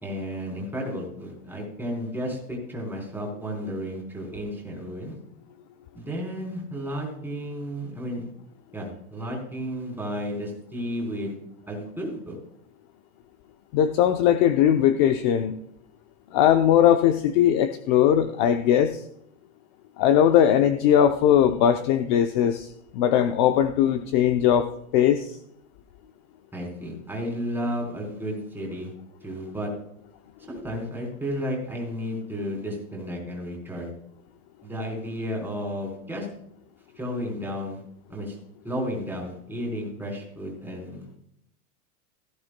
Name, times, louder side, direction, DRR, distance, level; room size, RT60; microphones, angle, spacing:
voice 1, 0.0-5.1 5.9-8.2 8.7-11.3 11.7-12.4 26.5-28.9 29.2-29.7 30.5-33.9 34.6-36.3 37.0-37.8 38.1-38.4 38.6-41.1, equal, 5° right, -1 dB, 3.6 m, -32 dB
voice 2, 13.7-15.5 16.3-19.0 20.0-22.7 22.9-24.7 24.9-25.3, left 10 dB, 35° left, 8 dB, 0.6 m, -19 dB
17.5 x 14.5 x 2.2 m, 0.74 s
supercardioid pair, 150°, 43 cm